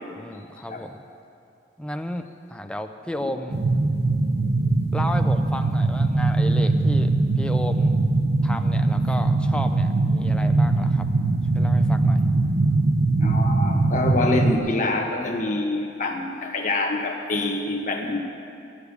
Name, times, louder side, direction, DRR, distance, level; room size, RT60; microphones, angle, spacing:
voice 1, 0.2-1.0 1.8-3.6 4.9-8.0 8.4-11.1 11.5-12.3, left 1 dB, 5° left, 6 dB, 0.4 m, -33 dB
sound 1, 3.5-14.6, right 2 dB, 55° right, 0.6 m, -21 dB
voice 2, 13.2-18.2, left 2 dB, 40° left, 1 dB, 1.1 m, -26 dB
11.5 x 7.0 x 8.2 m, 2.5 s
head